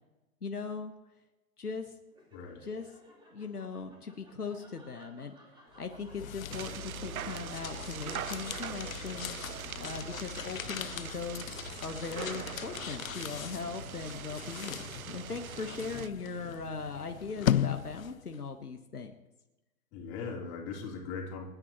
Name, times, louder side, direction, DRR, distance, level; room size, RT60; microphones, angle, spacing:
voice 1, 0.4-0.9 1.6-1.9 2.6-2.9 3.3-5.3 5.8-14.8 15.1-19.1, left 4 dB, 85° left, 5 dB, 1.3 m, -39 dB
Laughter, 2.1-8.7, equal, 10° right, 3.3 m, -59 dB
voice 2, 2.3-2.6 19.9-21.5, left 5 dB, 30° left, -1 dB, 3.5 m, -39 dB
sound 1, 5.8-18.4, left 10 dB, 65° left, 0.7 m, -38 dB
sound 2, 6.5-16.1, right 10 dB, 70° right, 0.6 m, -42 dB
28.0 x 9.6 x 3.0 m, 1.0 s
figure-of-eight pair, 115°, 45 cm